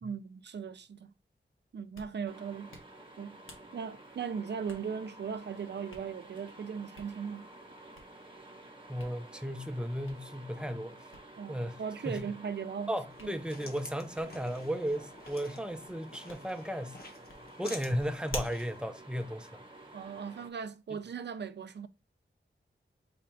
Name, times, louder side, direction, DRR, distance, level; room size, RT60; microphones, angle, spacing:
voice 1, 0.0-1.1 1.7-2.8 3.2-3.4 3.7-7.5 11.4-12.9 13.2-13.3 19.9-21.9, right 6 dB, 60° right, 0.5 m, -38 dB
Hands, 1.7-20.2, left 1 dB, 90° left, 1.2 m, -52 dB
sound 1, 2.3-20.5, right 1 dB, 25° right, 0.9 m, -52 dB
voice 2, 8.9-11.0 11.5-11.8 12.0-12.3 12.9-17.0 17.6-19.6, equal, 5° right, 0.5 m, -35 dB
sound 2, 13.1-18.8, left 2 dB, 50° left, 0.9 m, -50 dB
4.3 x 2.4 x 4.4 m
wide cardioid pair, 100°, 20 cm